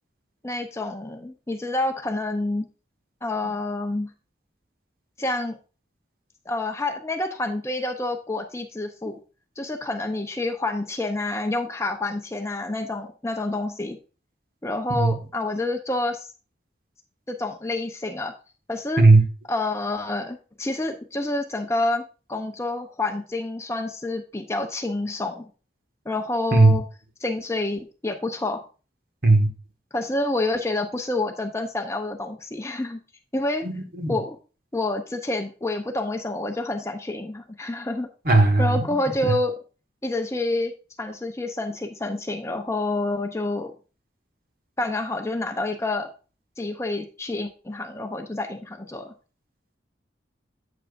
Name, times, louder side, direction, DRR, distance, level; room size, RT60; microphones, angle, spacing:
voice 1, 0.4-2.7 3.2-4.1 5.2-5.6 6.5-9.2 9.6-14.0 14.6-16.3 17.3-18.3 18.7-19.1 19.5-22.0 22.3-25.5 26.1-26.8 27.2-28.6 29.9-33.0 33.3-33.7 34.1-34.4 34.7-38.1 38.6-39.6 40.0-40.7 41.0-43.7 44.8-46.1 46.6-49.1, left 2 dB, 15° left, 0.6 m, -28 dB
voice 2, 33.6-34.2 38.2-38.8 39.2-39.3, right 2 dB, 50° right, 1.5 m, -17 dB
8.6 x 7.3 x 2.5 m
head